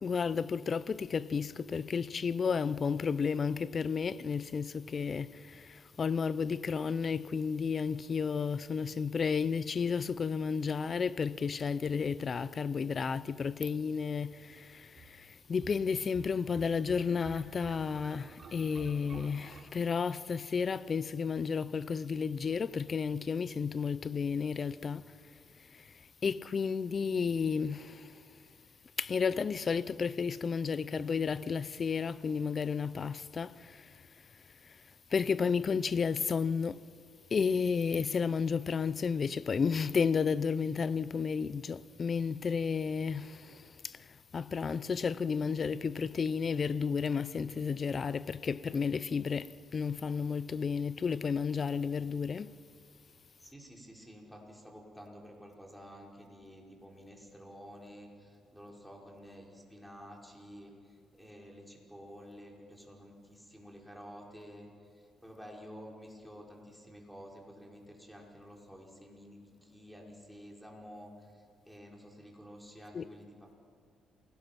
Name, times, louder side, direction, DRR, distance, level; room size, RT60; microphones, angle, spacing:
voice 1, 0.0-25.1 25.7-25.8 26.2-28.1 29.0-33.9 35.1-36.8 37.3-44.1 44.3-52.5 72.9-73.1, left 5 dB, 45° left, 0.6 m, -32 dB
sound 1, 15.0-19.6, right 5 dB, 45° right, 3.9 m, -51 dB
voice 2, 53.4-73.6, equal, ahead, 5.2 m, -51 dB
28.0 x 19.5 x 6.0 m
cardioid pair, 90°, 0 cm